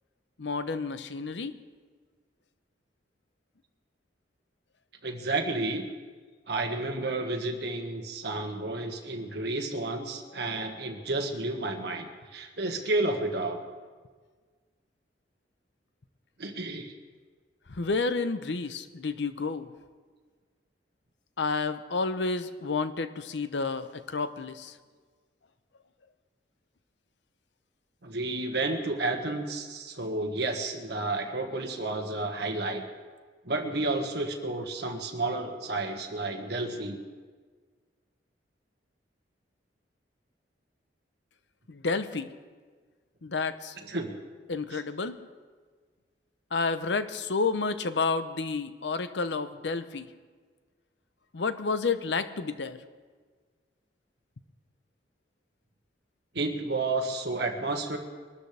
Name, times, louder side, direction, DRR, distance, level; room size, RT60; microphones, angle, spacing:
voice 1, 0.4-1.5 17.7-19.7 21.4-24.7 41.7-42.3 43.2-43.8 44.5-45.2 46.5-50.1 51.3-52.8, left 4 dB, 75° left, 11 dB, 0.8 m, -30 dB
voice 2, 5.0-5.8 6.5-13.6 16.4-16.9 28.0-32.8 33.4-37.0 43.9-44.1 44.7-44.8 56.3-58.0, right 2 dB, 65° right, 4 dB, 1.7 m, -31 dB
23.0 x 13.0 x 3.4 m, 1.5 s
head